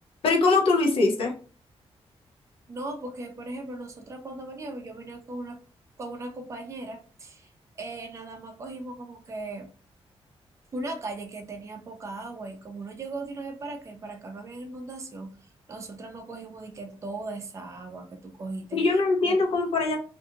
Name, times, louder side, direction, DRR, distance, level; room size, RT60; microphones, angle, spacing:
voice 1, 0.2-1.3 18.7-20.0, left 3 dB, 60° left, 0 dB, 0.6 m, -22 dB
voice 2, 2.7-5.6 6.0-7.5 7.8-9.7 10.7-19.0 19.2-19.4, right 2 dB, 30° right, 4 dB, 0.5 m, -38 dB
2.7 x 2.5 x 2.4 m, 0.38 s
wide cardioid pair, 175°, 11 cm